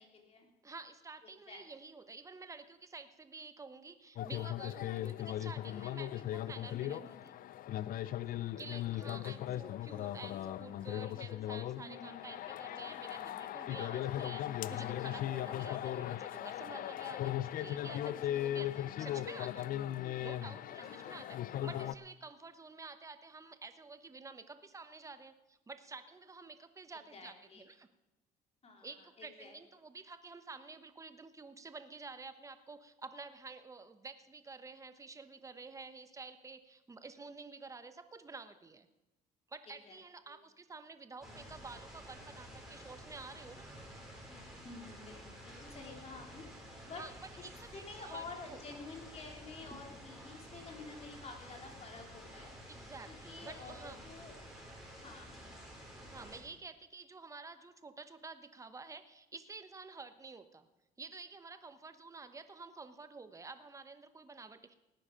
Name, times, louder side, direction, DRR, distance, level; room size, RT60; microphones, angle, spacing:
voice 1, 0.0-0.5 1.2-1.7 6.7-7.1 8.0-8.6 11.8-12.4 13.8-14.1 19.0-19.2 20.8-21.3 27.1-27.6 28.6-29.6 39.7-40.0 40.3-40.4 44.6-46.5 46.9-47.0 47.7-52.5 53.1-54.3 55.0-55.3, left 4 dB, 40° left, 2 dB, 2.9 m, -50 dB
voice 2, 0.6-7.3 8.6-19.9 20.2-27.9 28.8-38.9 39.5-43.7 46.9-48.6 52.7-54.0 56.1-60.7 61.0-64.7, right 4 dB, 20° right, 10 dB, 1.0 m, -50 dB
sound 1, 4.2-21.9, left 12 dB, 55° left, 0.5 m, -38 dB
sound 2, 41.2-56.4, equal, ahead, 4.7 m, -51 dB
18.0 x 9.9 x 5.1 m, 0.98 s
cardioid pair, 110°, 17 cm